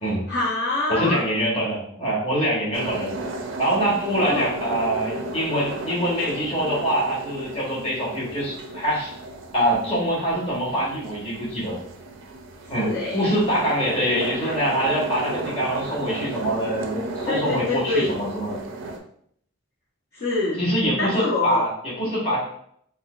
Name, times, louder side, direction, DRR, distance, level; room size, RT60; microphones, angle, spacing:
voice 1, 0.3-1.2 4.2-4.5 12.7-13.2 14.4-14.6 17.2-18.1 20.1-20.6 21.0-21.7, left 2 dB, 50° left, -8 dB, 0.7 m, -25 dB
voice 2, 0.9-3.1 3.6-9.1 9.5-11.7 12.7-18.6 20.6-22.6, equal, 30° left, -7 dB, 1.2 m, -24 dB
sound 1, 2.7-19.0, right 2 dB, 70° right, 0.4 m, -34 dB
4.1 x 2.2 x 2.4 m, 0.66 s
head